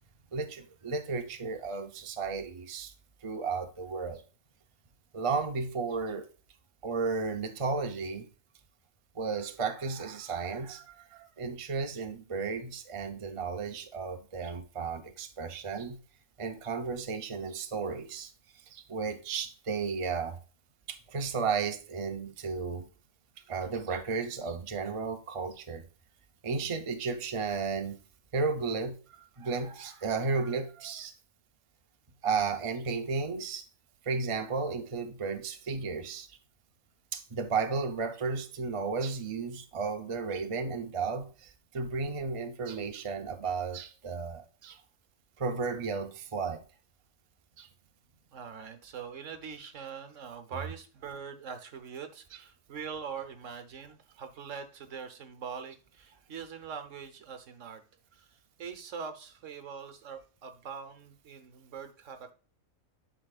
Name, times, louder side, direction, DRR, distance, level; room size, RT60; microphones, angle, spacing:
voice 1, 0.3-2.9 3.2-4.2 5.1-6.3 6.8-8.3 9.1-16.0 16.4-18.3 18.7-20.4 20.9-22.9 23.5-25.8 26.4-28.0 28.3-29.0 29.4-31.1 32.2-33.6 34.1-36.3 37.1-44.8 45.4-46.6 47.6-47.7, right 4 dB, 30° right, 0.6 m, -33 dB
voice 2, 48.3-57.8 58.1-62.3, right 6 dB, 65° right, 1.3 m, -43 dB
11.5 x 4.8 x 2.4 m
omnidirectional pair, 1.4 m